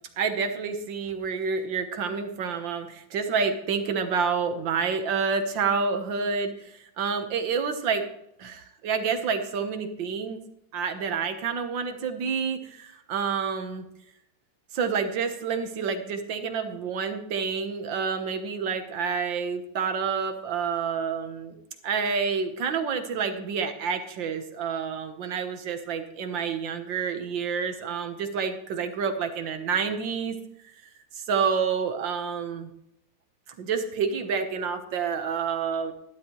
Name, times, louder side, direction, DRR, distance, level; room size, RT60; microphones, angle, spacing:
voice 1, 0.2-8.1 8.4-10.4 10.7-13.9 14.7-21.5 21.8-30.4 31.2-32.7 33.6-35.9, right 6 dB, 80° right, 7 dB, 1.9 m, -28 dB
12.5 x 12.0 x 3.1 m, 0.79 s
omnidirectional pair, 2.0 m